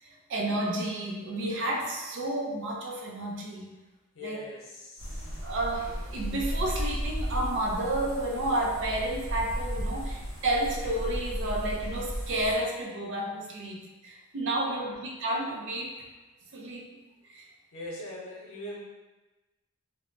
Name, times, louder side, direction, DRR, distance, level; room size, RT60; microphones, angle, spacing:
voice 1, 0.0-3.7 4.2-4.4 5.4-15.9 16.5-16.9 17.3-17.5, right 1 dB, 55° right, 0 dB, 0.4 m, -31 dB
voice 2, 4.1-5.4 14.6-15.0 17.7-18.8, left 1 dB, 70° left, -3 dB, 0.6 m, -42 dB
sound 1, 5.0-12.5, equal, 70° right, 0.9 m, -34 dB
3.1 x 2.0 x 2.4 m, 1.1 s
head